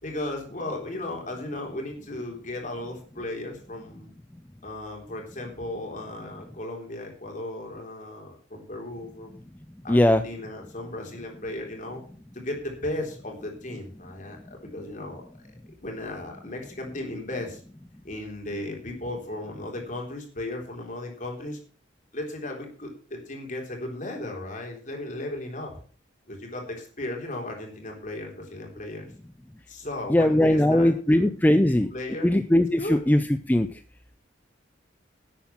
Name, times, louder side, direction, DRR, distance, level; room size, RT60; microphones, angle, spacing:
voice 1, 0.0-4.1 4.6-9.4 9.8-12.0 12.3-15.5 15.8-17.6 18.0-21.6 22.1-25.7 26.3-29.1 29.7-31.3 31.7-32.3 32.8-33.0, left 1 dB, 40° left, 1 dB, 3.9 m, -36 dB
voice 2, 9.9-10.2 30.1-31.9 32.2-33.2 33.5-33.7, left 1 dB, 10° left, 10 dB, 0.4 m, -20 dB
11.5 x 8.6 x 6.0 m, 0.43 s
head